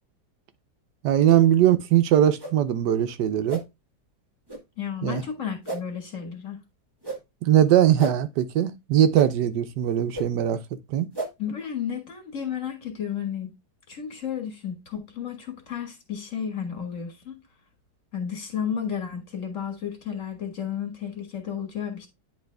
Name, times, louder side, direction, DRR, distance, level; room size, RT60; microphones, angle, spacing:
voice 1, 1.0-3.6 5.0-5.2 7.4-10.6 10.9-11.1, right 11 dB, 90° right, 1.4 m, -20 dB
sound 1, 1.3-1.4 2.4-2.5 3.5-3.6 4.5-4.6 5.6-5.8 7.0-7.2 8.0-8.1 9.1-9.3 10.1-10.3 11.1-11.3, right 1 dB, 15° right, 1.2 m, -32 dB
voice 2, 4.8-6.6 11.4-13.5 13.9-17.4 18.1-22.1, left 8 dB, 50° left, 2.1 m, -32 dB
9.8 x 3.3 x 3.4 m
omnidirectional pair, 1.8 m